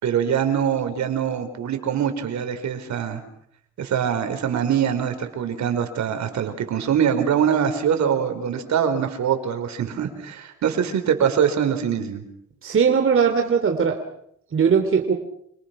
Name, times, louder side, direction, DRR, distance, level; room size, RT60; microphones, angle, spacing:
voice 1, 0.0-3.2 3.8-12.2, right 8 dB, 65° right, 7 dB, 4.9 m, -23 dB
voice 2, 12.6-14.0 14.5-15.1, right 6 dB, 45° right, 4 dB, 3.2 m, -19 dB
28.5 x 27.0 x 6.1 m, 0.71 s
cardioid pair, 90°, 30 cm